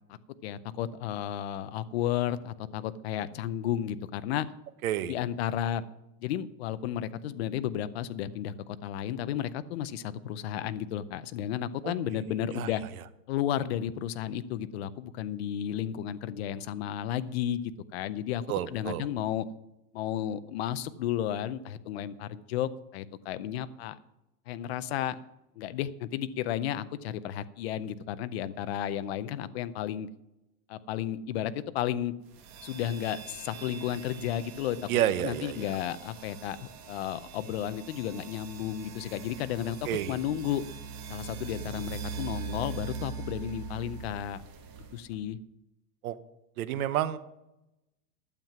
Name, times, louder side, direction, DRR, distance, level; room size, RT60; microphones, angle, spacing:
voice 1, 0.1-4.5 5.1-5.8 6.2-12.8 13.3-17.6 17.9-19.5 19.9-24.0 24.5-25.2 25.6-30.1 30.7-32.1 32.6-34.8 35.2-40.6 41.1-44.4 44.9-45.4, left 11 dB, 40° left, 13 dB, 0.5 m, -33 dB
voice 2, 4.8-5.1 11.8-11.9 12.6-12.7 18.5-19.1 34.9-35.7 39.9-40.2 46.0-46.2 46.6-47.2, right 12 dB, 60° right, 13 dB, 0.9 m, -29 dB
sound 1, 32.3-45.2, right 5 dB, 40° right, 2.0 m, -42 dB
12.5 x 7.4 x 5.9 m, 0.91 s
supercardioid pair, 165°, 49 cm